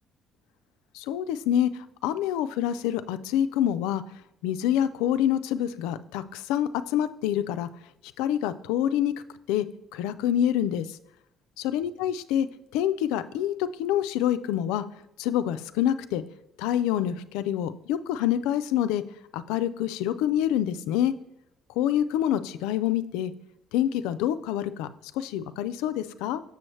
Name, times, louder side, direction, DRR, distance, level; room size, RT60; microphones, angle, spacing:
voice 1, 0.9-4.0 4.4-7.7 8.2-9.1 9.5-9.7 9.9-11.0 11.6-12.5 12.7-14.9 15.2-16.2 16.6-19.0 19.3-21.1 21.8-23.3 23.7-24.9 25.1-26.4, left 11 dB, 85° left, 12 dB, 0.3 m, -26 dB
6.8 x 6.3 x 3.1 m, 0.82 s
supercardioid pair, 60°, 0 cm